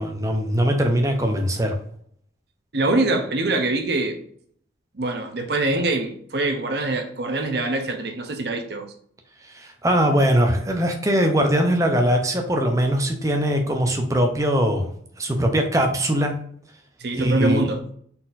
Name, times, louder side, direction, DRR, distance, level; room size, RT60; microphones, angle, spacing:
voice 1, 0.0-1.8 9.5-14.9 15.2-16.4 17.1-17.6, equal, 15° right, 0.6 m, -21 dB
voice 2, 2.7-4.2 4.9-8.9 17.0-17.8, right 2 dB, 60° right, 0.8 m, -24 dB
4.2 x 4.1 x 2.6 m
head